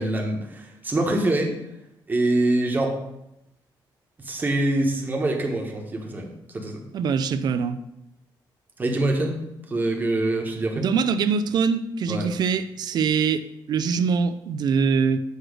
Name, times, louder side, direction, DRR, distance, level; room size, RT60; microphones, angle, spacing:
voice 1, 0.0-1.5 2.1-3.0 4.2-6.8 8.8-9.4 9.7-10.9 12.1-12.3, right 2 dB, 20° right, 1.1 m, -25 dB
voice 2, 6.9-7.8 10.7-15.2, right 6 dB, 55° right, 0.4 m, -23 dB
8.0 x 3.1 x 6.3 m
cardioid pair, 160°, 8 cm